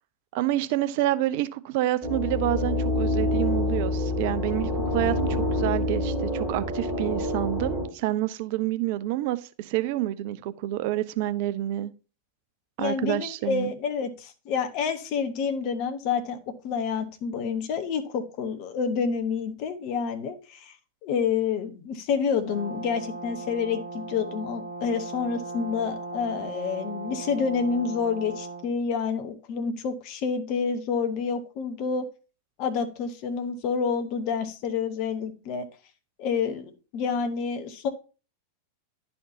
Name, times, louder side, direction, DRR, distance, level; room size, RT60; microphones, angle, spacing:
voice 1, 0.3-11.9 12.8-13.7, right 14 dB, 50° right, 0.4 m, -28 dB
sound 1, 2.0-7.9, left 1 dB, ahead, 2.5 m, -27 dB
voice 2, 12.8-16.4 16.6-20.7 21.0-32.0 32.6-35.6 36.2-37.9, left 6 dB, 45° left, 1.0 m, -28 dB
Brass instrument, 22.4-28.7, right 3 dB, 70° right, 1.4 m, -37 dB
11.0 x 4.3 x 2.7 m
figure-of-eight pair, 90°, 0 cm